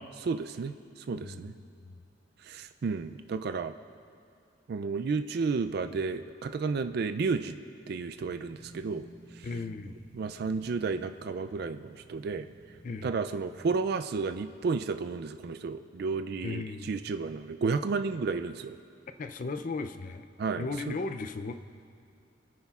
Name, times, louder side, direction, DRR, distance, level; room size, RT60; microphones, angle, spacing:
voice 1, 0.2-0.7 1.1-1.5 2.5-3.7 4.7-7.5 7.9-9.0 10.1-12.5 13.0-18.8 20.4-20.9, right 4 dB, 55° right, 9 dB, 0.3 m, -32 dB
voice 2, 1.1-1.5 1.8-2.0 9.4-9.9 12.8-13.1 16.4-16.9 19.2-20.2 20.6-21.5, left 3 dB, 45° left, 10 dB, 0.4 m, -36 dB
sound 1, 8.1-13.7, right 1 dB, 85° left, 3.0 m, -54 dB
28.5 x 9.7 x 2.4 m, 2.4 s
head